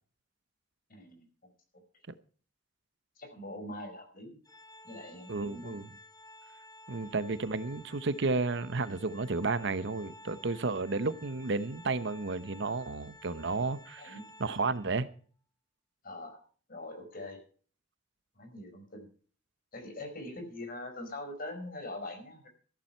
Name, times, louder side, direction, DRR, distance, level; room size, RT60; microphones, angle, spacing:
voice 1, 0.9-1.5 3.2-4.4 4.8-5.8 14.0-14.2 16.0-16.4 16.7-17.4 18.3-19.1 19.7-22.5, left 1 dB, 50° left, 5.0 m, -43 dB
Organ, 4.5-15.2, left 1 dB, 20° left, 1.2 m, -54 dB
voice 2, 5.3-5.9 6.9-15.1, right 3 dB, 65° right, 0.9 m, -32 dB
14.5 x 12.0 x 4.4 m
head